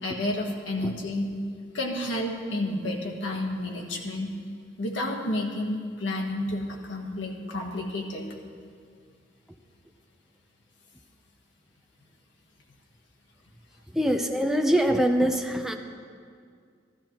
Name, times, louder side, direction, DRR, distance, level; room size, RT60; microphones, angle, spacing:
voice 1, 0.0-1.3 1.7-4.3 4.8-8.2, left 1 dB, 75° left, 0 dB, 1.4 m, -30 dB
voice 2, 13.9-15.7, equal, ahead, 4 dB, 0.6 m, -23 dB
14.0 x 13.5 x 3.0 m, 2.1 s
head